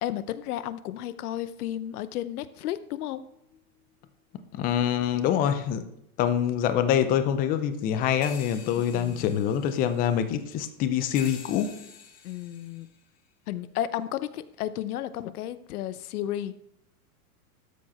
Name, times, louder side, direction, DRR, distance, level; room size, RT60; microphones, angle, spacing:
voice 1, 0.0-3.2 12.2-12.9 13.5-16.5, left 12 dB, 80° left, 14 dB, 0.7 m, -33 dB
sound 1, 2.5-3.6 4.0-4.1 4.4-4.5 8.2-10.7 11.2-13.2 14.0-14.1, left 7 dB, 55° left, 3.6 m, -46 dB
voice 2, 4.5-5.8 6.2-11.8, left 9 dB, 20° left, 10 dB, 0.4 m, -25 dB
12.5 x 4.7 x 4.2 m, 0.78 s
supercardioid pair, 140°, 44 cm